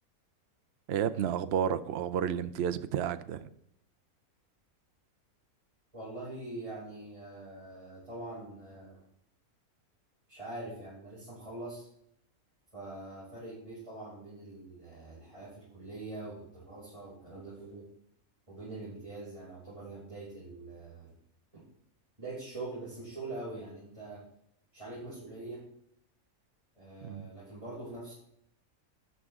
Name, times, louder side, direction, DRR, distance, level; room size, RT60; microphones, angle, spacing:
voice 1, 0.9-3.5 27.0-27.3, right 9 dB, 55° right, 12 dB, 0.8 m, -31 dB
voice 2, 5.9-9.0 10.3-11.9 12.7-17.9 18.5-21.1 22.2-24.2 24.7-25.7 26.8-28.1, right 2 dB, 20° right, -9 dB, 5.6 m, -43 dB
13.0 x 9.5 x 3.7 m, 0.70 s
omnidirectional pair, 1.6 m